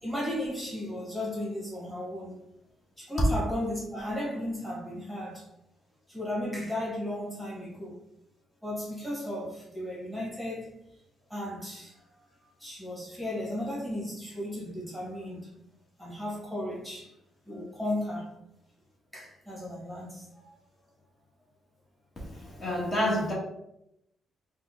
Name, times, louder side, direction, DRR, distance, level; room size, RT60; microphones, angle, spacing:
voice 1, 0.0-2.4 3.0-5.5 6.1-8.0 8.6-10.7 11.3-15.5 16.0-17.1 17.4-18.3 19.1-20.5, left 1 dB, 5° left, -5 dB, 1.4 m, -35 dB
voice 2, 22.2-23.3, equal, 35° left, -4 dB, 1.3 m, -29 dB
4.1 x 2.2 x 3.7 m, 0.83 s
cardioid pair, 90°, 0 cm